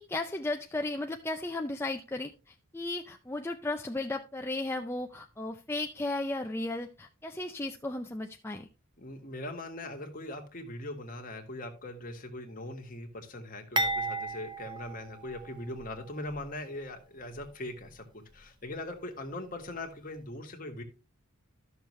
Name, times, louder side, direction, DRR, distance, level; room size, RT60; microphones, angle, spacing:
voice 1, 0.0-8.7, left 2 dB, 10° left, 4 dB, 0.4 m, -35 dB
voice 2, 9.0-18.1 18.3-20.8, left 1 dB, 40° left, 3 dB, 1.8 m, -40 dB
sound 1, 13.8-15.9 16.3-16.4 17.3-17.5, right 2 dB, 20° right, 0.8 m, -33 dB
12.5 x 6.6 x 3.2 m, 0.29 s
head